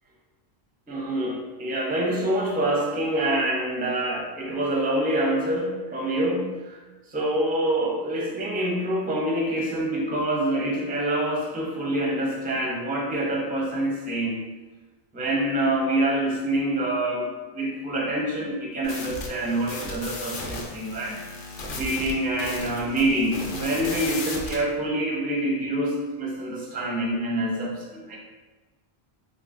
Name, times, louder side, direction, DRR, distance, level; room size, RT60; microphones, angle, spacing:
voice 1, 0.9-6.8 7.1-14.5 15.1-21.2 21.8-28.2, right 1 dB, 15° right, -2 dB, 0.3 m, -26 dB
sound 1, 18.8-24.6, left 2 dB, 60° left, 0.7 m, -35 dB
3.7 x 2.7 x 2.5 m, 1.3 s
omnidirectional pair, 1.1 m